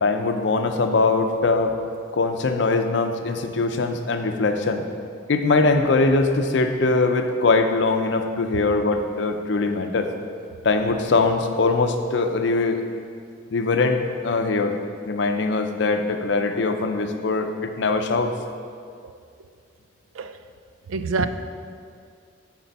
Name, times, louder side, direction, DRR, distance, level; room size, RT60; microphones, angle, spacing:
voice 1, 0.0-1.7 2.1-4.8 5.3-10.1 10.6-12.8 13.5-14.8 15.1-18.3, left 3 dB, 60° left, 6 dB, 0.5 m, -22 dB
voice 2, 20.9-21.3, right 4 dB, 85° right, 10 dB, 0.4 m, -26 dB
10.0 x 4.3 x 4.1 m, 2.2 s
head